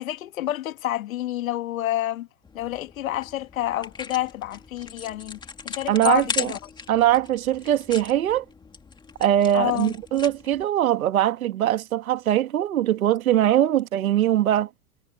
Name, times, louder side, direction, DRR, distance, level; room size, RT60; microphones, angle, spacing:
voice 1, 0.0-2.3 2.5-5.4 5.6-6.6 9.5-9.9, left 14 dB, 75° left, 2.1 m, -28 dB
sound 1, 2.4-10.6, left 5 dB, 10° left, 2.2 m, -38 dB
voice 2, 5.9-6.5 6.9-8.4 9.2-14.7, right 12 dB, 85° right, 2.0 m, -21 dB
supercardioid pair, 145°, 41 cm